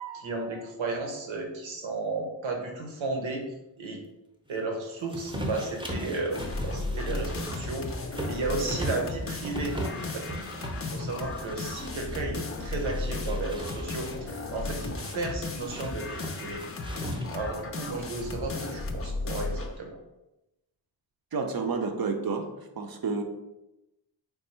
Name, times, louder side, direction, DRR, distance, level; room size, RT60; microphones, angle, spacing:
voice 1, 0.0-3.4 3.8-4.0 4.5-9.7 10.0-10.3 10.8-17.0 17.3-20.0, right 3 dB, 80° right, 1 dB, 0.9 m, -34 dB
sound 1, 5.1-12.2 12.6-14.2 15.0-17.6, equal, 10° right, 0.7 m, -38 dB
sound 2, 6.3-19.8, left 2 dB, 30° left, 0.5 m, -35 dB
voice 2, 21.3-22.5 22.8-23.2, right 4 dB, 50° right, 4 dB, 0.6 m, -29 dB
3.4 x 2.3 x 4.3 m, 0.96 s
wide cardioid pair, 75°, 46 cm